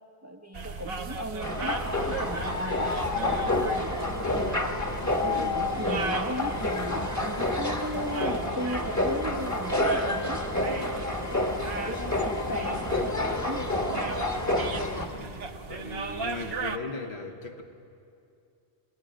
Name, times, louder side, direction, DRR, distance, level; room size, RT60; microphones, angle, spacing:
voice 1, 0.2-4.4 5.2-10.4 10.8-13.7, equal, 15° right, 5 dB, 0.7 m, -36 dB
sound 1, 0.5-16.8, right 4 dB, 65° right, 1.1 m, -38 dB
sound 2, 1.4-15.1, left 2 dB, 15° left, 1.1 m, -29 dB
voice 2, 15.1-17.6, left 3 dB, 75° left, 3 dB, 1.7 m, -38 dB
28.0 x 19.5 x 5.1 m, 2.5 s
omnidirectional pair, 1.1 m